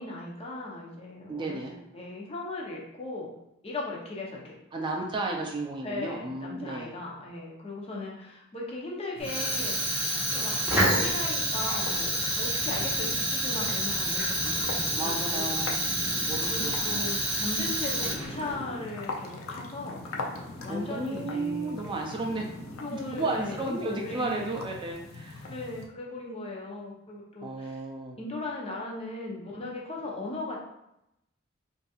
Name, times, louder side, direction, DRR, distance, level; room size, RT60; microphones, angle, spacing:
voice 1, 0.0-1.6 1.9-3.4 3.6-4.5 5.8-10.0 10.3-15.6 16.4-20.0 20.6-21.9 22.8-24.5 25.4-27.8 28.2-30.6, left 2 dB, 30° left, -3 dB, 0.7 m, -37 dB
voice 2, 1.3-1.8 4.7-6.9 15.0-15.8 16.2-17.1 20.7-22.5 22.9-25.5 27.4-28.2, right 2 dB, 25° right, 1 dB, 0.3 m, -33 dB
sound 1, 9.2-25.9, left 3 dB, 85° left, 0.5 m, -42 dB
Fire, 9.2-18.5, right 1 dB, 10° right, 1.0 m, -28 dB
sound 2, 13.0-13.4 14.4-15.2 15.8-17.0 17.8-18.8 19.8-21.0 22.0-23.0 24.8-24.9, left 1 dB, 70° left, 1.4 m, -44 dB
3.9 x 2.6 x 2.3 m, 0.84 s
head